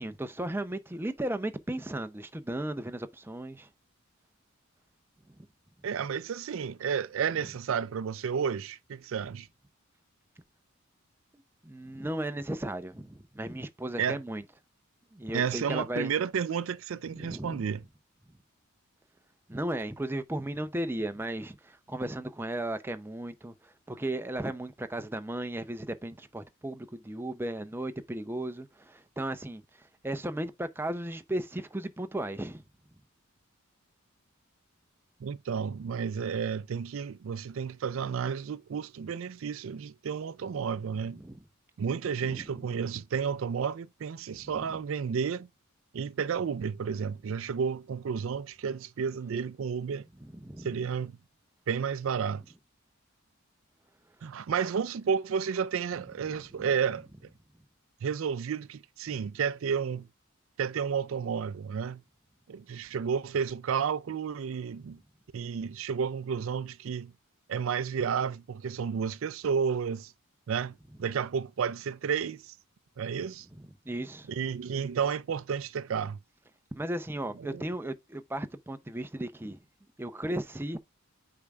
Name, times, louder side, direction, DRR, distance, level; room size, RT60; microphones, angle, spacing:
voice 1, 0.0-3.7 11.6-14.5 15.1-16.1 17.1-17.7 19.5-29.6 30.0-32.6 41.0-41.4 42.2-42.6 44.4-44.8 50.1-50.9 56.1-56.7 70.9-71.1 73.5-74.5 76.7-79.6 80.0-80.8, right 1 dB, 10° right, 0.5 m, -36 dB
voice 2, 5.8-9.5 14.0-14.2 15.3-17.8 35.2-41.2 41.8-45.5 45.9-50.0 50.6-51.2 51.7-52.4 54.2-57.1 58.0-60.1 60.6-62.0 62.5-65.0 65.3-67.1 67.5-70.1 70.5-72.6 73.0-73.5 74.3-76.2 77.4-77.6, right 6 dB, 65° right, 0.4 m, -31 dB
8.7 x 4.7 x 2.4 m
head